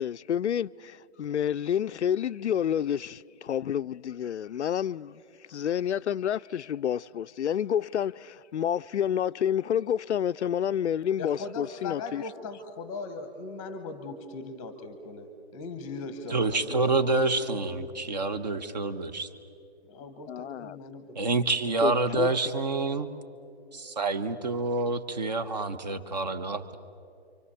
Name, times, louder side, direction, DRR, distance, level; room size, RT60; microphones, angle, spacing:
voice 1, 0.0-5.2 5.5-12.2 20.3-20.8 21.8-22.3, left 9 dB, 85° left, 0.5 m, -29 dB
voice 2, 11.2-17.6 19.8-21.3, left 3 dB, 10° left, 1.0 m, -39 dB
voice 3, 16.3-19.3 21.1-23.1 23.7-26.8, right 3 dB, 40° right, 1.2 m, -27 dB
28.5 x 24.5 x 7.0 m
hypercardioid pair, 170°, 33 cm